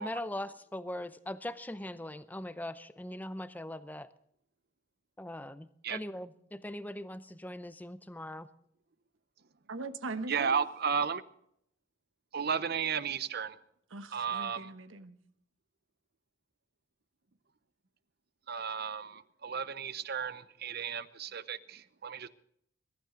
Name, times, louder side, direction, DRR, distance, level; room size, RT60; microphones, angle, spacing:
voice 1, 0.0-4.1 5.2-8.5, left 1 dB, 10° left, 0.6 m, -41 dB
voice 2, 9.7-10.6 13.9-15.2, right 3 dB, 80° right, 1.1 m, -40 dB
voice 3, 10.3-11.2 12.3-13.6 14.1-14.7 18.5-22.3, right 6 dB, 55° right, 0.8 m, -34 dB
22.0 x 12.5 x 3.8 m
head